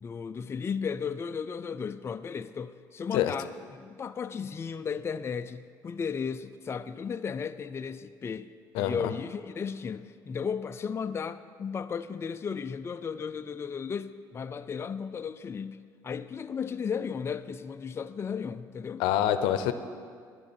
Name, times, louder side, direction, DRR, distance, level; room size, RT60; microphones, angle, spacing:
voice 1, 0.0-8.5 8.8-19.0, left 6 dB, 30° left, 0.5 m, -35 dB
voice 2, 19.0-19.7, left 11 dB, 85° left, 0.7 m, -26 dB
11.0 x 7.0 x 9.6 m
supercardioid pair, 85°, 8 cm